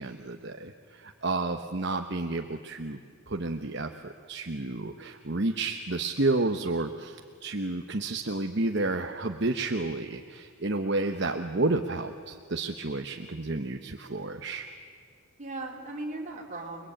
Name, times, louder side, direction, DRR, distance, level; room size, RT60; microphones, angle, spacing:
voice 1, 0.0-3.0 3.3-14.7, right 2 dB, 55° right, 5 dB, 1.1 m, -31 dB
voice 2, 15.4-16.9, right 2 dB, 35° right, 0 dB, 4.0 m, -39 dB
29.5 x 21.5 x 8.9 m, 2.1 s
head